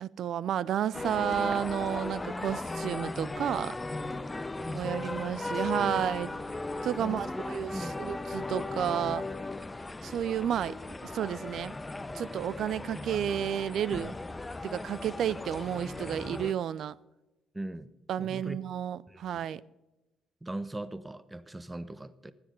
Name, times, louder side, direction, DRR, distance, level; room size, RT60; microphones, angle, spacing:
voice 1, 0.0-3.8 4.7-6.3 6.8-9.3 10.0-11.7 12.1-14.1 14.6-17.0 18.1-19.6, right 10 dB, 65° right, 0.5 m, -32 dB
sound 1, 0.9-16.5, left 2 dB, 20° left, 0.7 m, -37 dB
voice 2, 4.6-4.9 5.5-6.0 7.0-7.4 7.7-8.0 17.5-17.9 18.2-18.6 19.1-19.2 20.4-22.3, right 1 dB, 15° right, 0.9 m, -40 dB
13.0 x 9.9 x 5.3 m
supercardioid pair, 60°, 0 cm